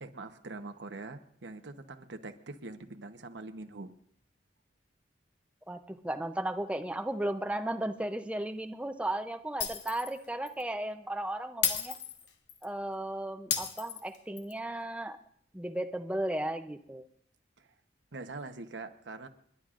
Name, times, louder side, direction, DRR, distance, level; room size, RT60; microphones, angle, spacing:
voice 1, 0.0-3.9 17.6-17.7 18.1-19.3, right 3 dB, 90° right, 7 dB, 1.0 m, -43 dB
voice 2, 5.7-12.0 12.6-15.2 15.5-17.0, right 1 dB, 5° right, 7 dB, 0.6 m, -35 dB
Shatter, 9.6-10.2 10.5-10.6 11.6-12.6 13.5-14.5, left 8 dB, 75° left, 1.3 m, -33 dB
30.0 x 11.0 x 2.5 m, 0.64 s
head